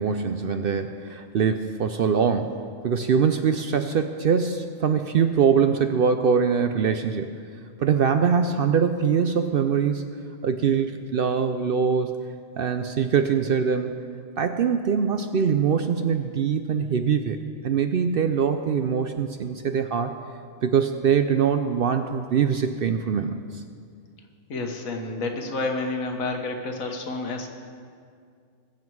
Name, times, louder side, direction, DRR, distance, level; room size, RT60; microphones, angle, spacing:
voice 1, 0.0-2.6 2.8-7.3 7.8-10.0 10.4-12.2 12.6-14.0 14.4-17.4 17.6-20.1 20.6-23.6, right 6 dB, 60° right, 8 dB, 0.6 m, -23 dB
voice 2, 24.5-27.5, left 3 dB, 90° left, 4 dB, 1.7 m, -29 dB
21.5 x 7.5 x 4.7 m, 2.2 s
omnidirectional pair, 1.4 m